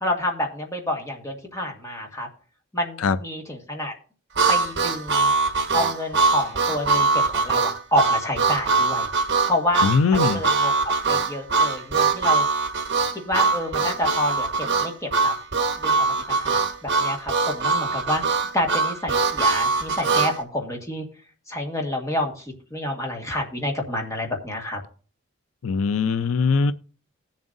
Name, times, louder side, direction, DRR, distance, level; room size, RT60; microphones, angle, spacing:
voice 1, 0.0-2.3 2.7-3.9 4.5-5.3 5.7-9.1 9.5-10.7 11.1-12.4 13.1-15.3 15.8-21.0 21.5-24.8, left 1 dB, 15° left, 1.7 m, -28 dB
Harmonica, 4.4-20.3, right 4 dB, 55° right, 1.5 m, -22 dB
voice 2, 9.8-10.4 25.6-26.7, left 5 dB, 80° left, 0.5 m, -21 dB
19.0 x 7.3 x 2.6 m
head